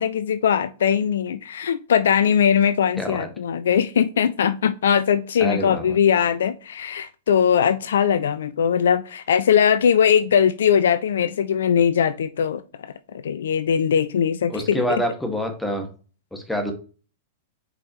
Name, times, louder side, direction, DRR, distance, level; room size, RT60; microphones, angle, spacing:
voice 1, 0.0-14.8, left 8 dB, 65° left, 0.5 m, -20 dB
voice 2, 3.0-3.3 5.4-6.0 14.5-15.9 16.3-16.7, equal, 5° left, 1.8 m, -26 dB
8.1 x 5.2 x 3.0 m
figure-of-eight pair, 100°, 0 cm